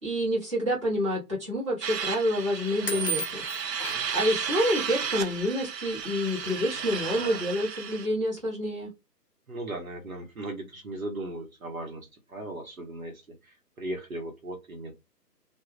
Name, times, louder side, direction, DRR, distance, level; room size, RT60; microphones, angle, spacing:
voice 1, 0.0-3.4 4.1-8.9, equal, 20° right, -7 dB, 1.0 m, -28 dB
sound 1, 1.8-8.1, right 7 dB, 90° right, 0.6 m, -33 dB
sound 2, 2.9-4.1 5.2-5.3 6.1-6.2 6.4-6.8, right 2 dB, 35° left, 0.7 m, -33 dB
voice 2, 9.5-13.1 13.4-14.9, right 1 dB, 55° right, 3 dB, 0.9 m, -37 dB
2.3 x 2.2 x 3.2 m, 0.22 s
figure-of-eight pair, 150°, 49 cm